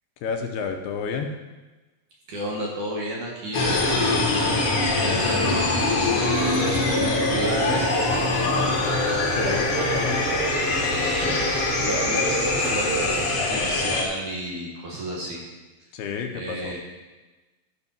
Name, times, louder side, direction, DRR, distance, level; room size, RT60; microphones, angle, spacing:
voice 1, 0.2-1.3 9.3-10.2 15.9-16.7, left 6 dB, 80° left, 4 dB, 2.6 m, -30 dB
voice 2, 2.3-4.4 4.7-5.7 6.0-9.1 11.2-11.5 11.8-15.4 16.3-16.8, right 1 dB, 55° right, -3 dB, 2.5 m, -32 dB
sound 1, 3.5-14.0, left 2 dB, 55° left, 1.6 m, -23 dB
sound 2, 6.3-13.4, right 11 dB, 85° right, 2.6 m, -34 dB
12.5 x 5.4 x 5.6 m, 1.2 s
omnidirectional pair, 4.7 m